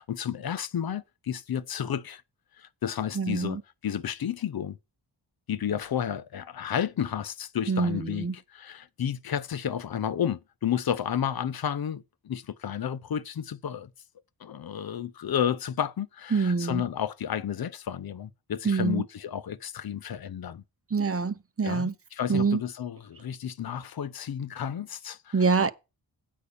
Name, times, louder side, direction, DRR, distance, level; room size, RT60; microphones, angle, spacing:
voice 1, 0.0-2.2 2.6-4.8 5.5-13.9 14.4-20.6 21.6-25.4, left 9 dB, 55° left, 0.7 m, -32 dB
voice 2, 3.1-3.6 7.7-8.3 16.3-16.9 18.6-19.0 20.9-21.9 22.3-22.6 25.3-25.7, right 4 dB, 30° right, 0.8 m, -25 dB
8.4 x 5.4 x 6.9 m
cardioid pair, 80°, 44 cm